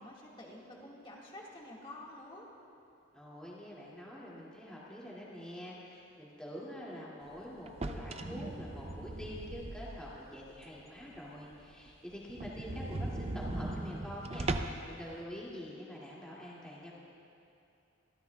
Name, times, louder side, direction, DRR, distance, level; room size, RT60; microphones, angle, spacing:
voice 1, 0.0-2.5, left 1 dB, 25° left, -3 dB, 1.8 m, -49 dB
voice 2, 3.1-16.9, equal, 5° left, -7 dB, 2.4 m, -46 dB
sound 1, 7.7-10.2 10.6-10.7 11.2-11.3 11.5-11.6 11.9-12.0 12.3-14.9, right 2 dB, 30° right, 0.5 m, -38 dB
26.0 x 13.5 x 2.3 m, 2.7 s
head